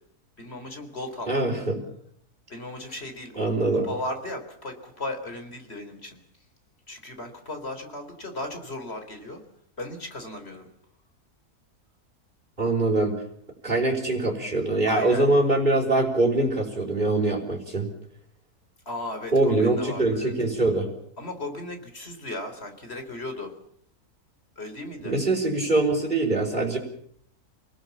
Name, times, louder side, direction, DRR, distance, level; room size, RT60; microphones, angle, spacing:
voice 1, 0.4-1.4 2.5-3.5 3.8-6.2 6.9-9.4 9.8-10.7 14.9-15.3 18.9-20.3 21.2-23.5 24.6-25.2, left 1 dB, 40° left, 6 dB, 4.2 m, -36 dB
voice 2, 1.3-1.8 3.3-3.9 12.6-13.2 13.6-17.9 19.3-20.9 25.0-26.8, right 2 dB, 30° right, -5 dB, 5.1 m, -23 dB
29.0 x 19.5 x 7.3 m, 0.68 s
omnidirectional pair, 1.6 m